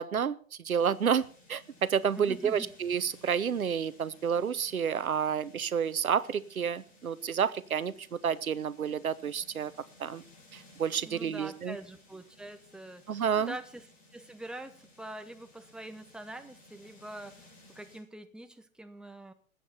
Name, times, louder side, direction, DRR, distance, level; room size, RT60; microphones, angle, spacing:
voice 1, 0.0-9.7 10.0-10.2 10.5-11.8 13.1-13.5, right 7 dB, 90° right, 17 dB, 1.0 m, -30 dB
sound 1, 0.7-18.0, left 2 dB, 20° left, 6.3 m, -59 dB
voice 2, 2.1-2.7 11.0-13.8 14.1-17.5 17.7-19.3, right 1 dB, ahead, 8 dB, 1.0 m, -44 dB
21.0 x 8.5 x 4.2 m, 0.43 s
hypercardioid pair, 115°, 41 cm